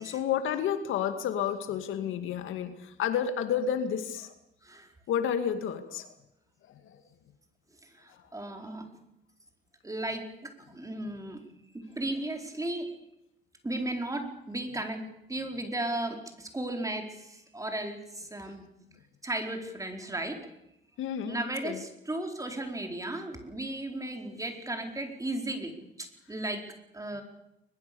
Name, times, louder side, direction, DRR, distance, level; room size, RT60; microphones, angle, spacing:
voice 1, 0.0-4.3 5.1-6.1 6.7-7.0 8.1-8.3 21.0-21.8, left 8 dB, 85° left, 9 dB, 2.3 m, -31 dB
voice 2, 4.6-4.9 7.8-8.9 9.8-11.4 11.9-12.9 13.6-15.0 15.3-18.6 19.2-20.4 21.3-25.7 26.0-26.6 26.9-27.2, right 1 dB, 15° right, 4 dB, 4.7 m, -35 dB
22.0 x 21.5 x 7.0 m, 0.86 s
cardioid pair, 90°, 20 cm